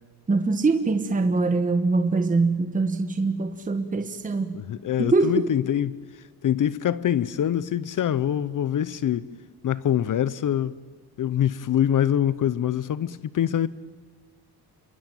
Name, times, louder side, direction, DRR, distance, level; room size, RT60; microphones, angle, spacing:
voice 1, 0.3-4.6 5.0-5.5, right 3 dB, 20° right, 1.2 m, -23 dB
voice 2, 4.5-6.0 6.4-9.3 9.6-10.7 11.2-13.7, left 10 dB, 50° left, 0.7 m, -24 dB
27.5 x 22.5 x 9.1 m
cardioid pair, 140°, 39 cm